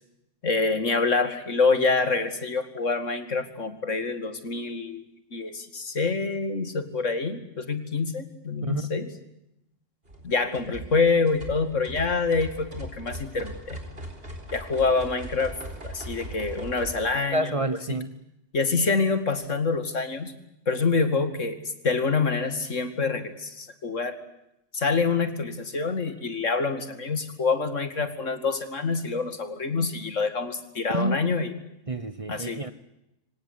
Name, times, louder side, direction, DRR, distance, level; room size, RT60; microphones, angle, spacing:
voice 1, 0.4-5.0 5.3-9.1 10.2-13.8 14.5-15.5 15.8-17.4 17.9-18.0 18.5-20.3 20.7-21.6 21.8-24.2 24.7-31.5 32.3-32.6, left 4 dB, 80° left, 10 dB, 2.7 m, -26 dB
sound 1, 10.0-17.1, right 1 dB, 50° right, 4.3 m, -40 dB
voice 2, 17.3-18.2 30.9-31.2 31.9-32.7, right 1 dB, 30° right, 13 dB, 1.1 m, -28 dB
26.0 x 17.5 x 9.7 m, 0.86 s
omnidirectional pair, 1.3 m